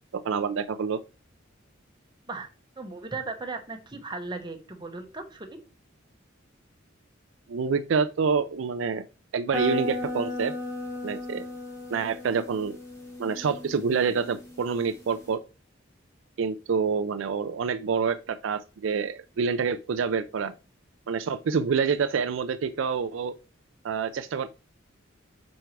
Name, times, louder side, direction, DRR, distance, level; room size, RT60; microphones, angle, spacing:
voice 1, 0.1-1.0 7.5-9.0 9.3-10.5 11.0-11.4 11.9-12.8 13.2-15.4 16.4-20.5 21.1-23.3 23.8-24.5, right 5 dB, 75° right, 0.4 m, -27 dB
voice 2, 2.8-5.6, right 3 dB, 20° right, 1.1 m, -37 dB
sound 1, 9.5-15.3, left 2 dB, 15° left, 1.9 m, -35 dB
5.3 x 4.6 x 4.5 m
head